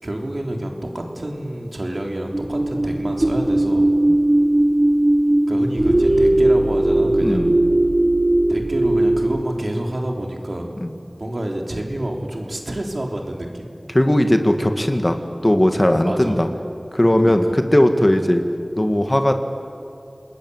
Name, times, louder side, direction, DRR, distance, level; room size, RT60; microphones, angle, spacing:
voice 1, 0.0-3.9 5.5-7.5 8.5-10.7 11.2-13.7 16.1-16.4 17.2-17.3, right 1 dB, 60° right, 2 dB, 3.6 m, -28 dB
sound 1, 2.3-9.4, right 1 dB, 40° right, 1.8 m, -18 dB
voice 2, 7.2-7.5 10.8-10.9 13.9-15.2 15.4-16.5 16.9-18.4 18.8-19.3, left 1 dB, 30° left, 6 dB, 2.1 m, -17 dB
28.5 x 20.0 x 8.1 m, 2.5 s
wide cardioid pair, 45°, 0 cm